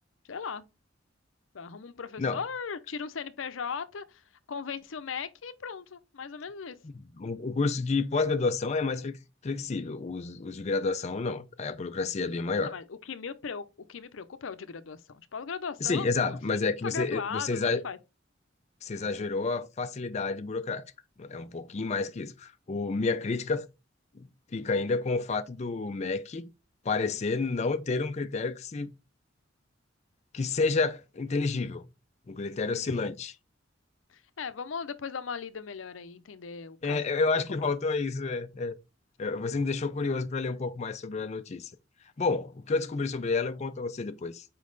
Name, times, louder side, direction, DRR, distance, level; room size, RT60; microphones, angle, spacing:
voice 1, 0.3-0.7 1.5-6.8 12.6-17.6 17.8-18.0 32.9-33.1 34.1-37.0 37.6-37.7, left 6 dB, 85° left, 0.6 m, -38 dB
voice 2, 6.8-9.2 9.4-12.7 15.8-17.8 18.8-20.8 21.2-23.7 24.1-26.5 26.8-28.9 30.3-31.8 32.3-33.3 36.8-38.7 39.2-41.7 42.2-44.4, left 4 dB, 35° left, 0.4 m, -30 dB
5.3 x 4.7 x 3.9 m
head